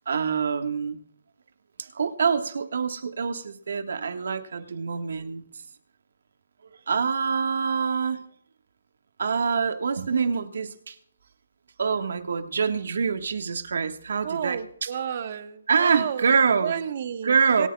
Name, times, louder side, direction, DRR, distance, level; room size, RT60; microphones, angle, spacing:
voice 1, 0.1-1.0 1.8-5.4 6.9-8.2 9.2-11.0 11.8-14.9 15.7-16.8 17.2-17.7, right 5 dB, 65° right, 7 dB, 1.5 m, -25 dB
voice 2, 14.2-16.3 16.6-17.7, right 8 dB, 45° right, 10 dB, 1.2 m, -31 dB
26.0 x 9.3 x 2.3 m, 0.63 s
hypercardioid pair, 155°, 0 cm